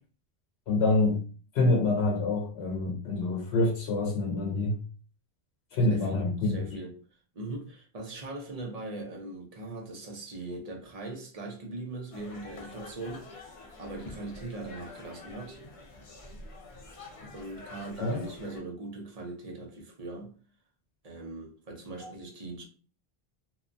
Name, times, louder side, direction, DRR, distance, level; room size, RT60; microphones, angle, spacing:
voice 1, 0.7-1.2 1.5-4.8 5.7-6.7 18.0-18.2 22.0-22.1, left 2 dB, 85° left, 0.9 m, -26 dB
voice 2, 5.9-7.0 7.3-13.5 13.8-15.6 17.3-20.4 21.0-22.6, right 2 dB, 45° right, 0.7 m, -40 dB
sound 1, 12.1-18.6, left 2 dB, 45° left, 0.5 m, -47 dB
2.7 x 2.2 x 2.5 m
omnidirectional pair, 1.0 m